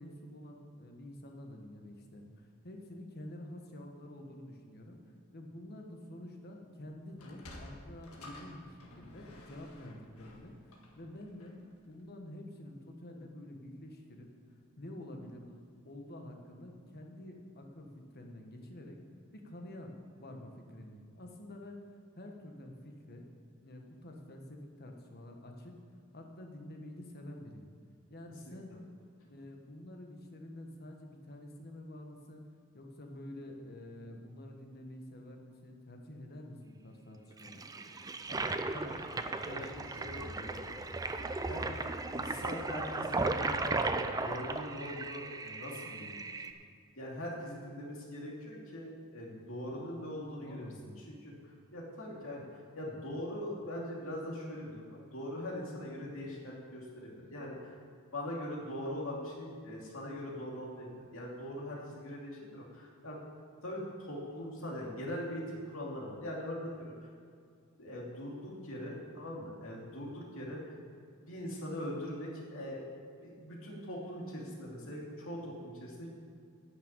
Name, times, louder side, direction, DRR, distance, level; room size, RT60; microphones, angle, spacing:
voice 1, 0.0-5.0 5.3-11.6 11.9-15.6 15.8-19.0 19.3-19.9 20.2-23.3 23.5-25.8 26.1-27.7 28.1-28.8 29.2-37.7 50.4-51.0, left 1 dB, 45° left, 3 dB, 1.4 m, -48 dB
Sliding door, 7.1-11.7, left 1 dB, 80° left, 1.7 m, -52 dB
Toilet flush, 37.4-46.5, right 3 dB, 15° right, 0.4 m, -36 dB
voice 2, 38.3-41.1 41.4-41.7 42.1-46.2 47.0-50.7 51.1-57.8 58.1-63.2 63.6-67.1 67.8-70.8 71.3-72.8 73.2-76.1, left 1 dB, 65° left, -3 dB, 2.8 m, -42 dB
10.0 x 6.3 x 8.7 m, 2.3 s
head